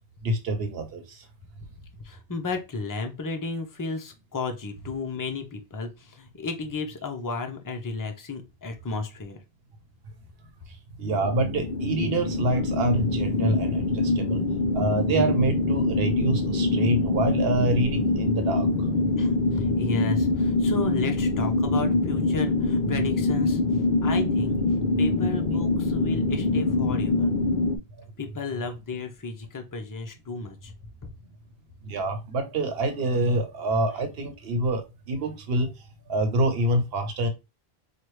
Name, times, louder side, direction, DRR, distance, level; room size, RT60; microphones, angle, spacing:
voice 1, 0.2-1.3 11.0-14.4 14.7-18.7 31.8-35.7 36.1-37.3, right 2 dB, 70° right, 1.0 m, -26 dB
voice 2, 2.0-9.4 19.2-24.6 25.0-27.3 28.2-30.7, left 4 dB, 25° left, 0.5 m, -33 dB
sound 1, 11.1-27.8, left 2 dB, 55° left, 0.7 m, -24 dB
4.7 x 2.4 x 3.1 m
omnidirectional pair, 1.0 m